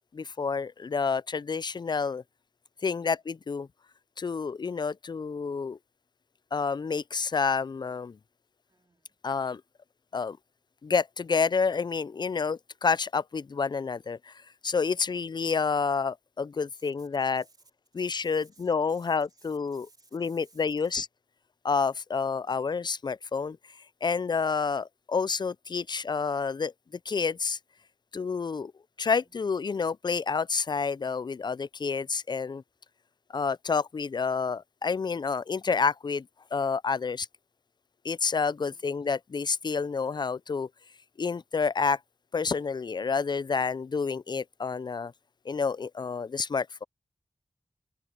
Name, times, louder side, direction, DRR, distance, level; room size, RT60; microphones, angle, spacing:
voice 1, 0.1-2.2 2.8-3.7 4.2-5.8 6.5-8.2 9.2-9.6 10.1-10.4 10.8-14.3 14.6-17.4 17.9-19.9 20.1-21.1 21.6-23.6 24.0-26.7 27.1-27.6 28.1-28.7 29.0-32.6 33.3-36.3 36.5-37.3 38.0-40.7 41.2-42.0 42.3-45.1 45.5-46.8, left 5 dB, 40° left, 0.3 m, -29 dB
voice 2, 2.7-3.3 8.7-9.2 15.1-15.6 16.7-21.0 22.4-22.7 29.0-29.5 38.7-39.1, right 2 dB, 40° right, 3.8 m, -63 dB
wide cardioid pair, 75°, 11 cm